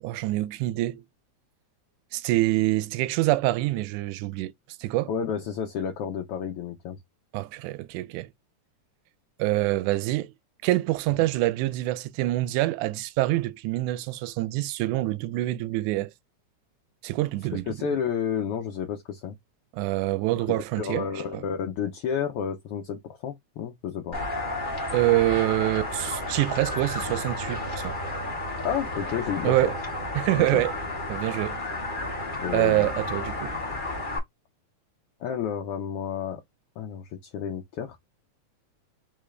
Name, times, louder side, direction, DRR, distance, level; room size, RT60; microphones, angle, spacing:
voice 1, 0.0-1.0 2.1-4.5 4.8-5.1 7.3-8.3 9.4-10.3 10.6-16.1 17.0-17.9 19.7-21.1 21.3-21.4 24.9-27.9 29.4-29.8 30.2-30.7 31.1-31.6 32.5-33.6, right 17 dB, 85° right, 2.0 m, -26 dB
voice 2, 5.1-7.0 17.5-19.4 20.3-20.5 20.8-24.2 28.6-29.7 30.4-30.6 32.4-32.9 35.2-36.4 36.8-38.0, left 8 dB, 75° left, 1.4 m, -31 dB
sound 1, 24.1-34.2, left 2 dB, 30° left, 0.9 m, -32 dB
4.3 x 3.6 x 3.2 m
omnidirectional pair, 3.5 m